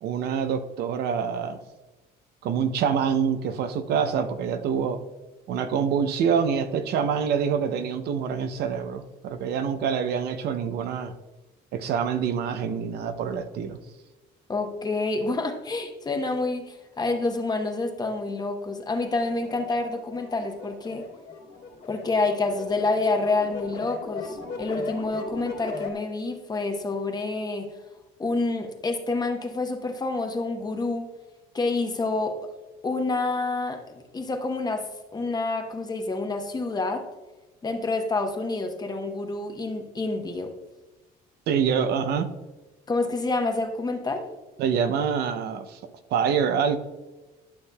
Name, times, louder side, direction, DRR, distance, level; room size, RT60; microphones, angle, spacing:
voice 1, 0.0-1.6 2.4-5.0 5.5-11.1 11.7-13.8 41.5-42.3 44.6-45.8 46.1-46.8, right 7 dB, 75° right, 9 dB, 0.7 m, -26 dB
voice 2, 14.5-21.1 21.9-27.7 28.2-31.1 31.5-32.4 32.8-37.1 37.6-40.5 42.9-44.3, left 3 dB, 25° left, 5 dB, 0.9 m, -28 dB
sound 1, 19.0-25.9, left 4 dB, 70° left, 2.2 m, -38 dB
11.5 x 6.5 x 2.3 m, 1.2 s
cardioid pair, 110°, 17 cm